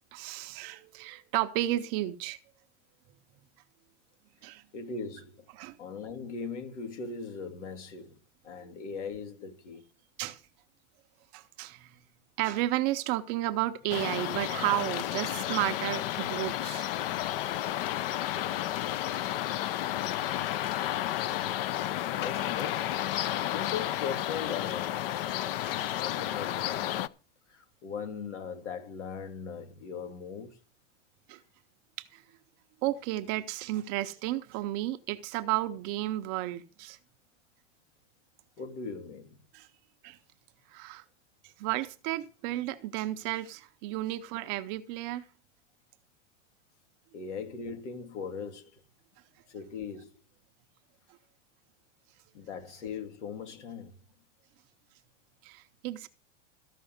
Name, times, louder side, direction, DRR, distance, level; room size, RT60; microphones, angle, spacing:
voice 1, 0.1-2.4 4.4-4.6 5.5-5.7 8.6-8.7 10.2-10.4 11.3-12.0 12.4-16.9 19.0-19.4 20.3-20.7 21.2-21.6 25.5-26.0 31.3-31.4 32.0-32.2 32.8-37.0 39.5-39.7 40.0-40.2 40.7-41.0 41.6-45.3 55.4-56.1, right 15 dB, 25° right, 0.6 m, -33 dB
voice 2, 4.7-5.4 5.8-8.2 8.4-9.8 22.2-23.0 23.5-25.0 26.0-27.1 27.5-30.6 38.6-39.4 47.1-48.8 49.5-50.1 52.3-53.9, left 5 dB, 75° left, 2.8 m, -39 dB
sound 1, 13.9-27.1, left 13 dB, 50° left, 0.6 m, -32 dB
14.0 x 5.9 x 7.8 m
supercardioid pair, 165°, 36 cm